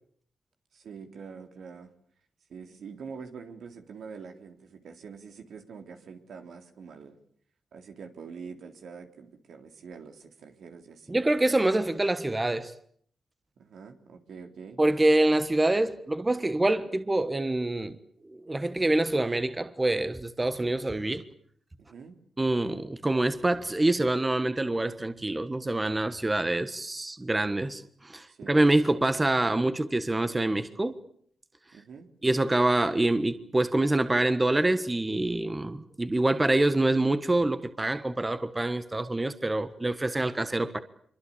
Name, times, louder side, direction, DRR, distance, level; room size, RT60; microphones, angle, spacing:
voice 1, 0.7-1.9 2.5-7.2 7.7-11.2 13.6-14.8 16.9-17.0 21.8-22.2 28.3-28.9 31.7-32.1, right 5 dB, 80° right, 3.6 m, -45 dB
voice 2, 11.1-12.7 14.8-18.0 18.2-21.2 22.4-31.0 32.2-40.8, right 2 dB, 20° right, 1.5 m, -26 dB
26.0 x 24.0 x 8.7 m
cardioid pair, 95°, 0 cm